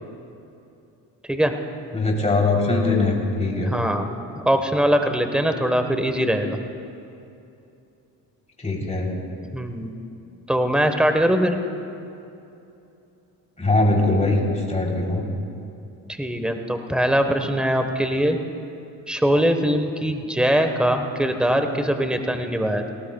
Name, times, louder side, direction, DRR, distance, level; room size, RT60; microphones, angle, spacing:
voice 1, 1.9-3.7 8.6-9.1 13.6-15.2, left 2 dB, 15° left, -1 dB, 3.4 m, -21 dB
voice 2, 3.6-4.1 4.4-6.6 9.5-9.9 10.5-11.6 16.1-18.4 19.1-22.9, equal, ahead, 6 dB, 1.2 m, -22 dB
18.5 x 18.5 x 2.3 m, 2.7 s
supercardioid pair, 75°, 42 cm